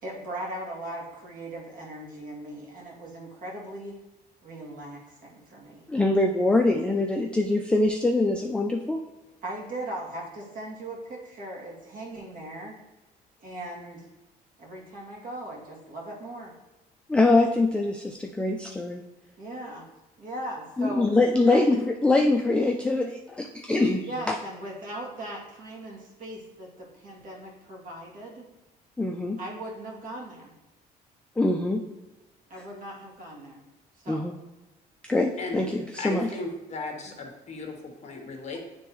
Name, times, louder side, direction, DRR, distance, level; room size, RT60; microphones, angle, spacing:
voice 1, 0.0-4.0 4.4-5.9 9.4-12.7 13.4-14.1 14.6-16.5 19.4-19.8 20.2-21.0 21.4-21.6 24.1-28.4 29.4-30.5 32.5-33.6 34.0-34.3 36.9-37.1, right 1 dB, 55° right, -2 dB, 1.9 m, -39 dB
voice 2, 5.9-9.0 17.1-19.0 20.8-24.4 29.0-29.4 31.4-31.8 34.1-34.3 35.0-36.3, left 2 dB, 5° left, 3 dB, 0.4 m, -24 dB
voice 3, 36.0-38.6, left 3 dB, 40° left, 2 dB, 1.2 m, -36 dB
9.0 x 3.4 x 3.1 m, 1.0 s
cardioid pair, 110°, 17 cm